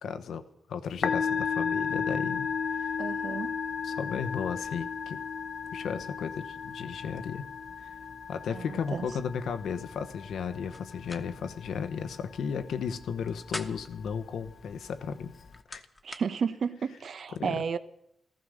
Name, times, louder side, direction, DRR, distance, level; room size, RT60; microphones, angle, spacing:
voice 1, 0.0-3.0 3.8-5.2 5.7-7.4 7.8-7.9 8.3-15.3 15.7-15.8 17.3-17.6, left 6 dB, 85° left, 10 dB, 1.1 m, -35 dB
Musical instrument, 0.9-15.6, left 6 dB, 60° left, 1.0 m, -35 dB
voice 2, 3.0-3.5 8.5-9.1 16.0-17.8, right 6 dB, 65° right, 11 dB, 1.0 m, -32 dB
sound 1, 10.7-11.2 11.6-11.7 13.1-14.0 15.1-16.3, left 1 dB, 15° left, 1.3 m, -42 dB
15.5 x 14.5 x 6.5 m, 0.72 s
cardioid pair, 90°, 0 cm